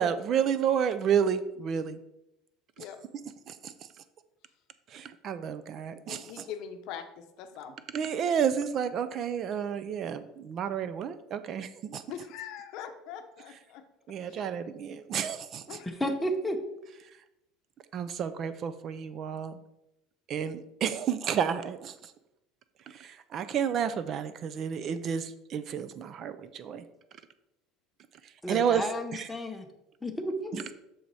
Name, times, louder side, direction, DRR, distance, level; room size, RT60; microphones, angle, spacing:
voice 1, 0.0-2.0 3.5-3.7 4.9-6.4 7.9-12.0 14.1-15.8 17.9-19.6 20.3-22.1 22.9-26.8 28.5-28.8 30.5-30.7, right 8 dB, 35° right, 12 dB, 0.3 m, -31 dB
voice 2, 6.1-7.8 12.1-14.4 15.7-15.9, left 9 dB, 55° left, 7 dB, 0.7 m, -42 dB
voice 3, 15.8-16.6 28.4-29.6 30.0-30.6, equal, 5° left, 4 dB, 0.7 m, -32 dB
6.3 x 4.5 x 4.1 m, 0.87 s
cardioid pair, 150°, 0 cm